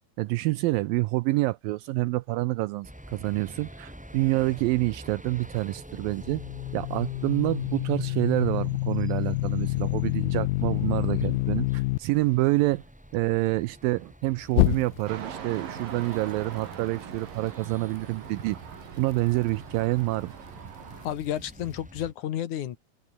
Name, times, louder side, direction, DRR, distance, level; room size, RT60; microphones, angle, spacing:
voice 1, 0.2-6.4 6.7-12.8 13.1-18.6 19.0-20.3, right 20 dB, 80° right, 2.2 m, -27 dB
sound 1, 2.8-22.1, equal, ahead, 2.4 m, -48 dB
sound 2, 6.2-12.0 14.5-15.3, left 21 dB, 80° left, 2.2 m, -27 dB
sound 3, 15.1-21.1, right 8 dB, 65° right, 4.5 m, -41 dB
voice 2, 21.0-22.8, left 11 dB, 60° left, 2.5 m, -31 dB
omnidirectional pair, 4.4 m